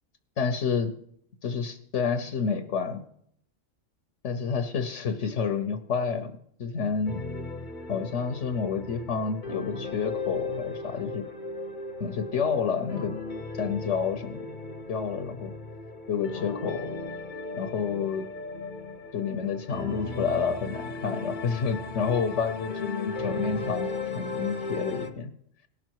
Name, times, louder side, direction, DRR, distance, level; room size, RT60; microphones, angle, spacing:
voice 1, 0.4-0.9 1.4-3.0 4.2-6.3 6.6-7.2 7.9-11.3 12.0-13.1 13.5-14.5 14.9-15.5 16.1-16.9 17.6-18.3 19.1-23.9 24.1-25.3, left 6 dB, 70° left, 7 dB, 1.1 m, -29 dB
sound 1, 7.1-25.1, left 3 dB, 40° left, 0.9 m, -36 dB
18.0 x 6.2 x 4.6 m, 0.67 s
omnidirectional pair, 1.3 m